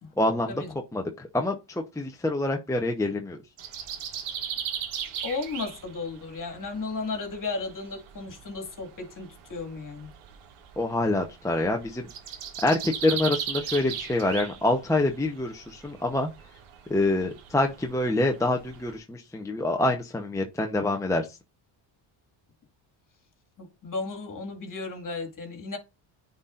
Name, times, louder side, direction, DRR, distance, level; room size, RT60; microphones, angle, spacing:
voice 1, 0.2-0.6 0.9-3.4 10.8-12.1 12.6-16.3 16.9-21.4, left 2 dB, 5° left, 0.9 m, -26 dB
sound 1, 3.6-19.0, right 8 dB, 85° right, 1.4 m, -38 dB
voice 2, 5.2-10.1 23.6-25.8, left 3 dB, 40° left, 2.4 m, -34 dB
9.6 x 4.3 x 2.5 m
cardioid pair, 95°, 48 cm